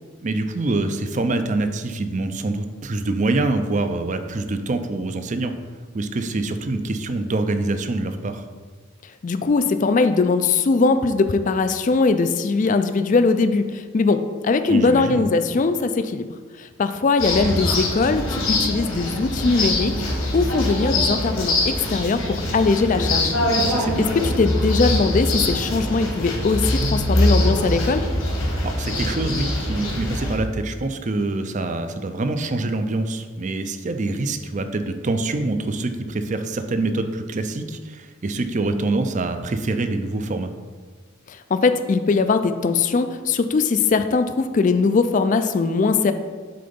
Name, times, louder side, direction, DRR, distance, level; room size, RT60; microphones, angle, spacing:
voice 1, 0.2-5.5 5.9-8.4 14.7-15.3 17.4-17.5 23.6-24.1 28.6-40.5, right 2 dB, 35° right, 8 dB, 0.5 m, -25 dB
voice 2, 9.2-20.0 20.3-23.3 24.0-28.0 41.3-46.1, left 4 dB, 35° left, 10 dB, 0.3 m, -20 dB
sound 1, 17.2-30.4, left 1 dB, 80° left, 1.8 m, -23 dB
7.8 x 3.8 x 5.2 m, 1.5 s
head